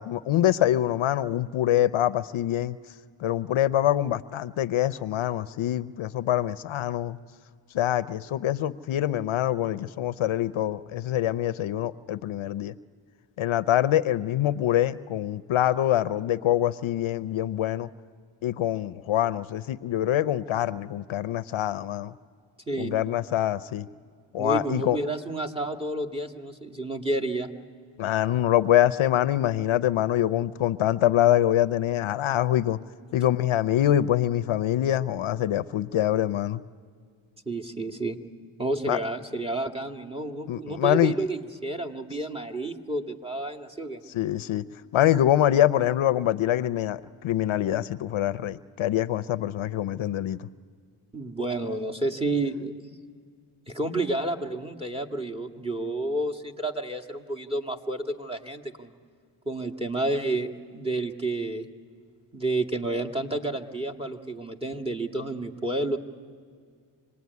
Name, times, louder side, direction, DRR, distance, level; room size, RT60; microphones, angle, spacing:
voice 1, 0.0-2.8 3.2-7.2 7.7-12.7 13.4-17.9 18.4-22.1 22.8-23.9 24.3-25.0 28.0-32.8 33.1-36.6 38.9-39.0 40.5-41.1 44.1-44.6 44.9-50.5, left 12 dB, 70° left, 14 dB, 0.7 m, -25 dB
voice 2, 24.4-27.5 37.5-38.2 38.6-44.0 51.1-53.0 53.7-58.9 59.5-61.7 62.3-66.0, right 2 dB, 10° right, 4 dB, 2.1 m, -30 dB
26.5 x 20.0 x 9.5 m, 2.1 s
cardioid pair, 55°, 49 cm